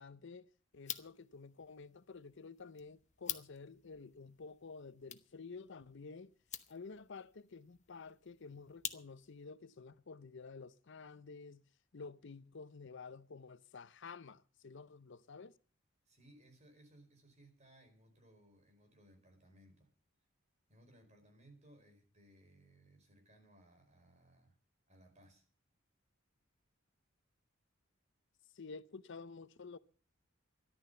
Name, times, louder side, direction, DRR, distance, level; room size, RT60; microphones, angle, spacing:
voice 1, 0.0-6.3 6.7-11.7 11.9-15.6 28.5-29.8, left 4 dB, 65° left, 0.7 m, -51 dB
sound 1, 0.7-9.5, left 10 dB, 35° left, 1.0 m, -49 dB
voice 2, 16.0-19.9 20.7-24.6 24.9-25.4, right 1 dB, 35° right, 4.9 m, -63 dB
13.5 x 11.5 x 6.8 m
head